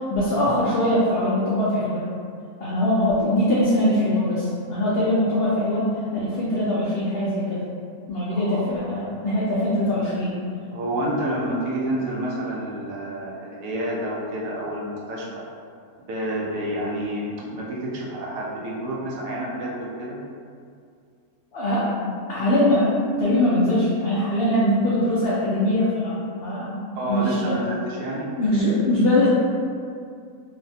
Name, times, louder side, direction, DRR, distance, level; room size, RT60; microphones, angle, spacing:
voice 1, 0.1-2.2 2.6-7.6 8.1-10.4 21.5-27.7 28.4-29.3, left 1 dB, 80° left, -8 dB, 0.5 m, -22 dB
voice 2, 8.3-8.9 10.7-15.4 16.1-20.2 27.0-28.3, right 1 dB, 70° right, -5 dB, 0.9 m, -29 dB
3.1 x 2.1 x 2.6 m, 2.3 s
omnidirectional pair, 1.6 m